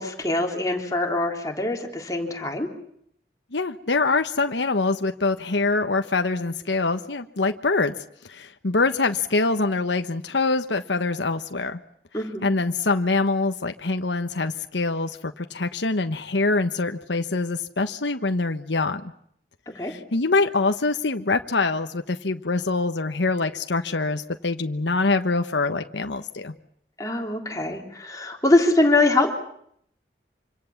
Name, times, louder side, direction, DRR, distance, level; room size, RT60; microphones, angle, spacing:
voice 1, 0.0-2.7 12.1-12.5 19.8-19.9 27.0-29.3, left 2 dB, 20° left, 2 dB, 3.5 m, -23 dB
voice 2, 3.5-7.9 8.3-11.8 12.4-19.0 19.8-26.5, left 3 dB, 80° left, 7 dB, 1.2 m, -24 dB
26.0 x 25.5 x 7.2 m, 0.69 s
head